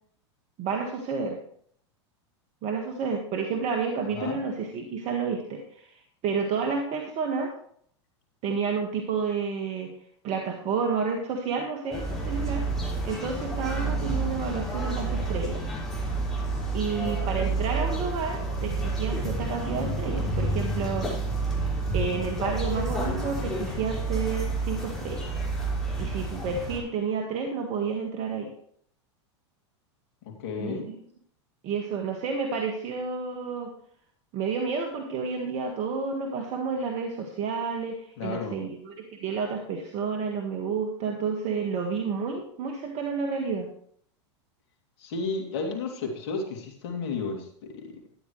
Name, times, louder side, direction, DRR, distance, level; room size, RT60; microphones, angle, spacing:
voice 1, 0.6-1.4 2.6-7.5 8.4-9.9 10.2-12.6 13.0-15.6 16.7-21.1 21.9-25.4 26.0-28.5 30.6-30.9 31.6-33.7 34.3-38.9 39.2-43.7, right 5 dB, 45° right, 2 dB, 1.8 m, -30 dB
sound 1, 11.9-26.8, right 2 dB, ahead, 5.8 m, -29 dB
voice 2, 16.9-17.5 30.2-30.9 38.2-38.6 45.0-48.0, left 4 dB, 60° left, 1 dB, 3.0 m, -33 dB
13.0 x 10.0 x 3.3 m, 0.63 s
hypercardioid pair, 100°, 15 cm